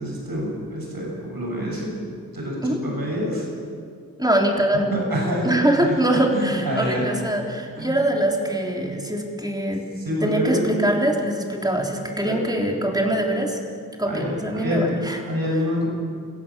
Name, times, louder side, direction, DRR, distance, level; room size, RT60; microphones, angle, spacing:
voice 1, 0.0-1.9 2.3-2.6 2.8-3.5 4.9-5.5 5.8-5.9 6.3-7.1 7.8-7.9 10.0-10.7 12.2-12.4 14.0-15.9, equal, 85° right, -2 dB, 6.9 m, -26 dB
voice 2, 4.2-5.0 5.4-9.9 10.2-13.6 14.0-15.2, right 1 dB, 10° right, 0 dB, 3.6 m, -23 dB
29.0 x 15.5 x 7.5 m, 2.2 s
wide cardioid pair, 75°, 35 cm